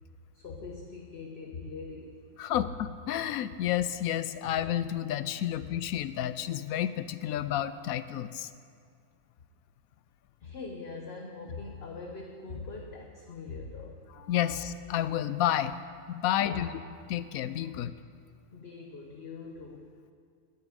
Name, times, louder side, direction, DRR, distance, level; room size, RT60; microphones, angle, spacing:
voice 1, 0.3-2.2 10.4-14.1 16.5-16.7 18.5-19.9, left 4 dB, 50° left, 2 dB, 1.1 m, -42 dB
voice 2, 2.4-8.5 14.2-15.7 16.1-16.7 17.1-17.9, left 11 dB, 75° left, 14 dB, 1.0 m, -30 dB
21.0 x 9.7 x 5.2 m, 2.2 s
omnidirectional pair, 1.6 m